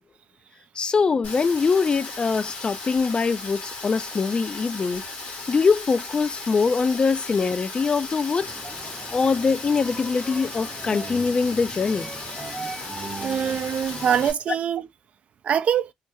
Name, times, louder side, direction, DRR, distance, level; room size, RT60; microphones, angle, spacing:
voice 1, 0.8-5.0 5.5-8.5 9.1-12.1, left 5 dB, 35° left, 0.3 m, -23 dB
Rain, 1.2-14.3, left 3 dB, 80° left, 1.6 m, -36 dB
sound 1, 8.4-14.3, right 3 dB, 20° right, 0.6 m, -39 dB
voice 2, 13.2-14.9 15.4-15.9, right 8 dB, 60° right, 0.3 m, -23 dB
3.2 x 2.2 x 3.0 m
supercardioid pair, 60°, 3 cm